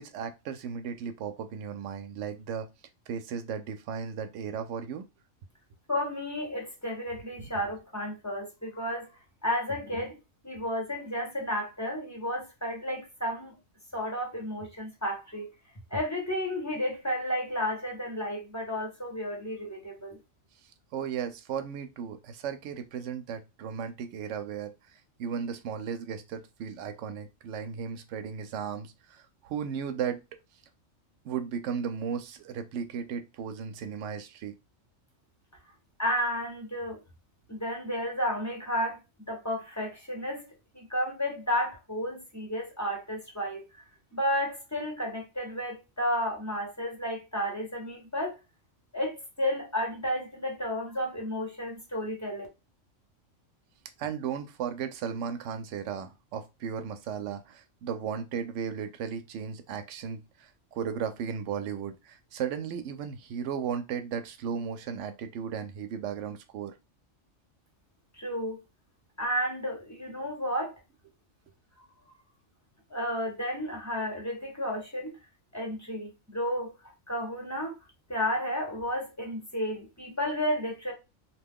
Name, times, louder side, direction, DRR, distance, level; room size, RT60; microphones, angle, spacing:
voice 1, 0.0-2.7 3.1-5.0 7.4-7.5 20.9-24.7 25.2-30.2 31.2-34.5 54.0-66.7, right 7 dB, 75° right, 0.9 m, -35 dB
voice 2, 5.9-9.1 9.4-10.2 10.4-13.6 13.9-15.5 15.9-20.2 36.0-37.0 37.5-39.0 39.3-43.8 44.1-48.4 48.9-52.5 68.2-68.6 69.2-70.8 72.9-75.2 75.5-76.7 77.1-77.7 78.1-80.9, equal, 15° left, 0.8 m, -32 dB
2.7 x 2.2 x 3.5 m
omnidirectional pair, 1.3 m